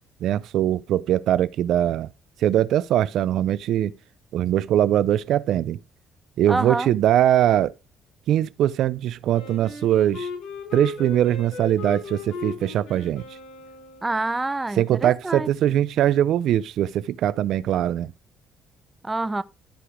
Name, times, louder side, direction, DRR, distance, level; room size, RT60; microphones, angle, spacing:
voice 1, 0.2-2.1 2.4-3.9 4.3-5.8 6.4-7.7 8.3-10.3 10.7-13.2 14.8-18.1, right 11 dB, 70° right, 0.4 m, -21 dB
voice 2, 6.5-6.9 14.0-15.5 19.0-19.4, right 2 dB, 15° right, 0.6 m, -27 dB
Wind instrument woodwind instrument, 9.3-14.4, left 4 dB, 80° left, 5.0 m, -37 dB
13.0 x 4.9 x 5.0 m
cardioid pair, 125°, 0 cm